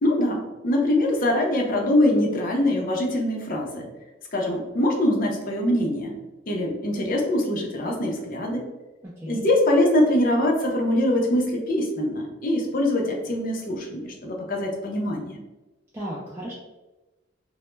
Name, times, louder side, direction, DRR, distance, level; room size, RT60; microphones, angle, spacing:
voice 1, 0.0-3.9 4.3-6.1 6.5-8.7 9.3-15.4, left 1 dB, 45° left, 1 dB, 0.5 m, -23 dB
voice 2, 9.0-9.4 15.9-16.5, equal, 10° right, -6 dB, 0.3 m, -35 dB
2.1 x 2.0 x 3.0 m, 1.1 s
head